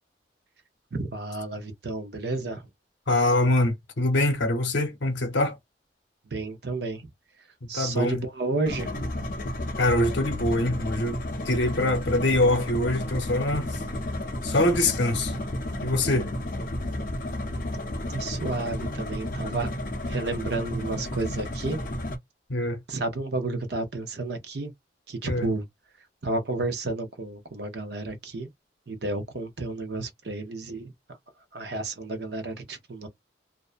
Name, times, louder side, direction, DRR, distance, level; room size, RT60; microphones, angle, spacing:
voice 1, 0.9-2.6 6.3-7.1 7.7-9.1 17.3-17.6 18.1-19.7 20.1-21.8 22.9-24.7 25.1-25.6 26.2-28.5 28.9-30.9 31.5-33.1, right 2 dB, 60° right, 0.7 m, -31 dB
voice 2, 3.1-5.6 7.6-8.2 9.8-13.9 14.4-15.3 15.8-16.3 22.5-22.8 25.2-25.5, left 1 dB, 80° left, 0.8 m, -24 dB
sound 1, 8.6-22.2, left 1 dB, 50° left, 0.6 m, -32 dB
2.5 x 2.1 x 2.4 m
head